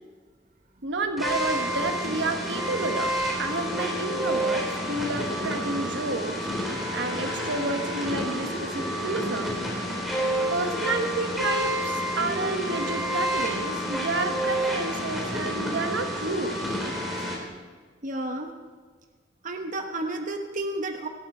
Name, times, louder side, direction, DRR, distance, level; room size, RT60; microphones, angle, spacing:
voice 1, 0.8-6.5 6.9-9.8 10.5-16.8, right 2 dB, 75° right, 6 dB, 1.3 m, -30 dB
sound 1, 1.2-17.4, equal, ahead, 3.5 m, -29 dB
Wind instrument woodwind instrument, 6.6-9.5 10.0-14.9, left 1 dB, 25° left, 5.9 m, -39 dB
voice 2, 18.0-18.5 19.4-21.1, right 2 dB, 45° right, 4 dB, 1.1 m, -31 dB
19.0 x 13.0 x 4.4 m, 1.5 s
head